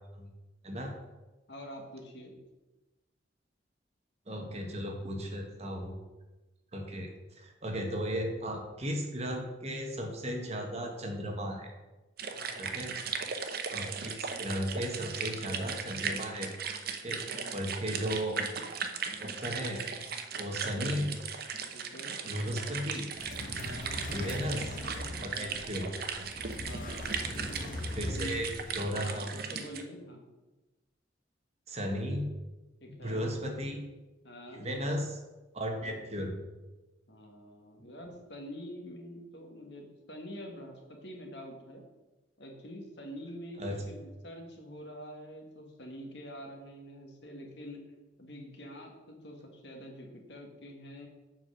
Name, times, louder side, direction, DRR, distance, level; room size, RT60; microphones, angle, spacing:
voice 1, 1.5-2.4 12.3-12.8 17.1-17.6 21.7-22.2 23.5-24.1 25.2-25.6 26.6-27.5 28.0-28.4 28.8-30.2 32.8-33.3 34.2-34.7 35.6-36.0 37.1-41.8 42.4-47.8 48.2-51.1, equal, 65° left, 2 dB, 1.5 m, -46 dB
voice 2, 4.3-5.9 6.7-7.1 7.4-11.7 12.6-12.9 13.7-16.5 17.0-17.2 17.5-18.4 18.7-18.8 19.2-19.8 20.4-21.1 22.2-23.1 24.1-24.8 25.1-25.9 27.9-28.5 28.7-29.3 31.7-32.3 33.0-33.8 34.5-35.2 35.5-36.3 43.6-43.8, equal, 35° right, 2 dB, 1.3 m, -35 dB
sound 1, 12.2-29.8, right 6 dB, 50° right, 0.7 m, -37 dB
sound 2, 23.2-28.9, left 1 dB, 45° left, 1.0 m, -40 dB
7.3 x 4.8 x 6.2 m, 1.1 s
head